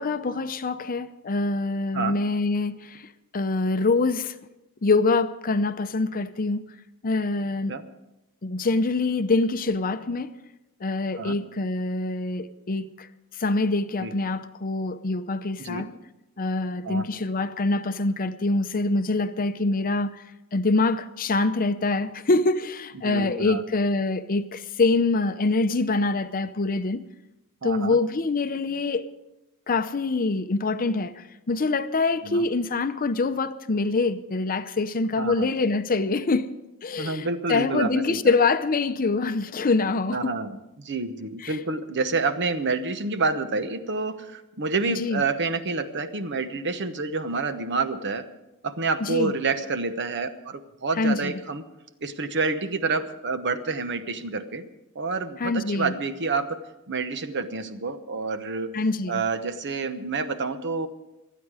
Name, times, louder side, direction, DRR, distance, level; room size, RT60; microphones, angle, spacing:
voice 1, 0.0-4.4 4.8-6.6 7.0-7.8 8.4-10.3 10.8-13.1 13.4-15.9 16.4-20.2 20.5-27.0 27.6-29.0 29.7-36.5 36.8-40.3 41.4-41.6 44.9-45.2 49.0-49.3 51.0-51.4 55.4-55.9 58.7-59.2, left 3 dB, 40° left, 0.7 m, -25 dB
voice 2, 23.0-23.6 27.6-28.0 32.2-32.5 35.2-35.5 37.0-38.3 40.1-48.2 48.6-51.6 52.0-54.7 54.9-56.6 56.9-58.7 59.1-60.9, right 4 dB, 55° right, 1.0 m, -28 dB
25.5 x 9.3 x 4.9 m
head